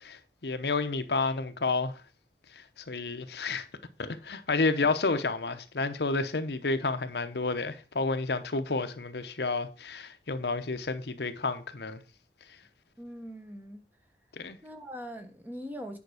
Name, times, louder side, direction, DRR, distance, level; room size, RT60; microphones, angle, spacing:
voice 1, 0.0-1.9 2.5-3.7 4.0-12.0 14.4-14.6, left 3 dB, 65° left, 0.8 m, -30 dB
voice 2, 13.0-13.8 14.6-16.0, equal, 10° right, 1.0 m, -42 dB
9.4 x 5.3 x 4.8 m
head